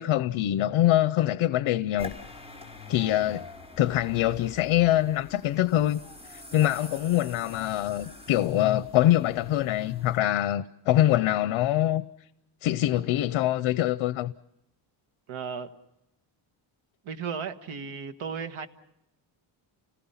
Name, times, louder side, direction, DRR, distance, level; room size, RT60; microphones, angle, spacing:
voice 1, 0.0-2.1 2.9-3.4 3.8-6.0 6.3-12.0 12.6-14.3, left 13 dB, 75° left, 0.7 m, -24 dB
sound 1, 2.0-10.2, left 2 dB, 10° right, 4.5 m, -46 dB
voice 2, 15.3-15.7 17.0-18.7, right 6 dB, 80° right, 1.6 m, -35 dB
29.5 x 19.0 x 5.7 m
cardioid pair, 150°, 48 cm